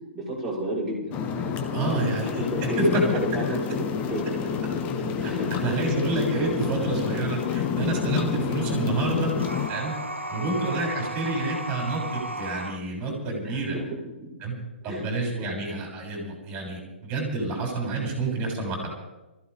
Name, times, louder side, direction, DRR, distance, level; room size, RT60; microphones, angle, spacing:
voice 1, 0.1-4.6 5.2-5.8 6.8-6.9 10.3-10.5 13.4-13.8 14.8-15.1 15.3-15.5, right 1 dB, 5° right, -9 dB, 7.2 m, -33 dB
sound 1, 1.1-9.7, left 6 dB, 25° left, 1.2 m, -28 dB
voice 2, 1.7-3.2 5.2-5.3 5.6-9.3 9.7-9.9 10.3-13.8 14.4-14.5 14.8-18.9, right 2 dB, 25° right, -2 dB, 6.6 m, -28 dB
sound 2, 9.3-12.8, right 1 dB, 80° right, 1.1 m, -34 dB
24.0 x 15.5 x 3.5 m, 1.0 s
figure-of-eight pair, 120°, 6 cm